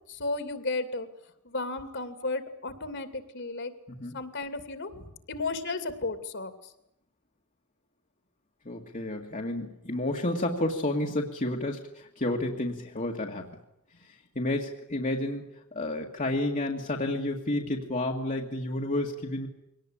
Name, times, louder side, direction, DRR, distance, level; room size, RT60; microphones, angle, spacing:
voice 1, 0.1-1.1 1.4-3.7 4.1-6.5, left 3 dB, 55° left, 10 dB, 2.7 m, -34 dB
voice 2, 8.7-13.6 14.0-15.4 15.7-19.5, left 1 dB, 35° left, 1 dB, 1.9 m, -31 dB
23.5 x 18.5 x 10.0 m, 0.84 s
head